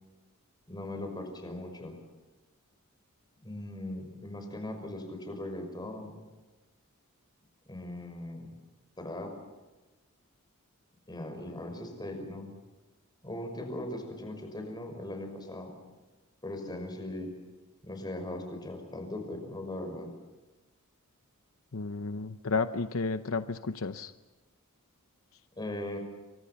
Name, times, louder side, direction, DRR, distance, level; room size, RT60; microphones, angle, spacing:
voice 1, 0.7-1.9 3.4-6.2 7.7-8.5 9.0-9.3 11.1-12.5 13.2-15.7 16.4-17.3 17.8-20.1 25.6-26.0, left 1 dB, 20° left, 5 dB, 5.8 m, -39 dB
voice 2, 21.7-24.1, left 4 dB, 70° left, 10 dB, 0.8 m, -32 dB
29.5 x 24.5 x 5.9 m, 1.2 s
head